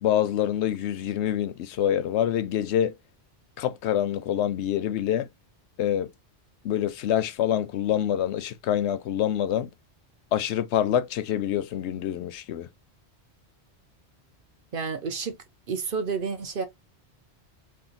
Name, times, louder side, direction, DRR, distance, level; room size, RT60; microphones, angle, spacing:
voice 1, 0.0-2.9 3.6-5.3 5.8-6.1 6.6-9.7 10.3-12.7, left 10 dB, 85° left, 0.9 m, -26 dB
voice 2, 14.7-15.4 15.7-16.6, right 5 dB, 55° right, 1.1 m, -30 dB
3.4 x 2.5 x 3.9 m
omnidirectional pair, 1.1 m